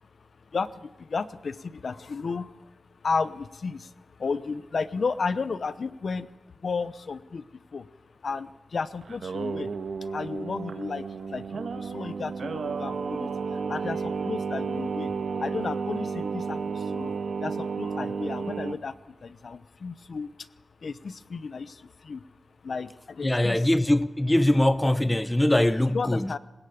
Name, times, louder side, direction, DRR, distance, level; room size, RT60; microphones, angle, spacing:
voice 1, 0.0-7.9 8.2-9.7 10.0-20.5 20.8-22.3 22.6-23.7 25.9-26.4, left 4 dB, 55° left, 0.9 m, -33 dB
Singing, 9.0-18.8, right 5 dB, 75° right, 1.5 m, -32 dB
voice 2, 23.2-26.3, left 1 dB, 10° left, 0.7 m, -22 dB
21.5 x 20.0 x 8.6 m
wide cardioid pair, 150°, 0 cm